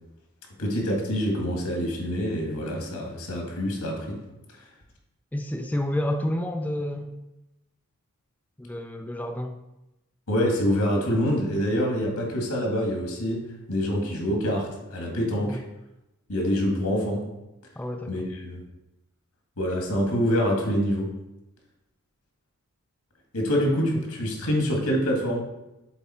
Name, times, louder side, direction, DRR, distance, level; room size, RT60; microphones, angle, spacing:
voice 1, 0.6-4.2 10.3-15.6 16.3-17.3 18.1-18.6 19.6-21.1 23.3-25.4, equal, 90° left, 0 dB, 1.9 m, -26 dB
voice 2, 5.3-7.1 8.6-9.6 15.4-15.6 17.8-18.1, left 1 dB, 5° left, 4 dB, 0.4 m, -29 dB
7.2 x 4.2 x 4.3 m, 0.95 s
head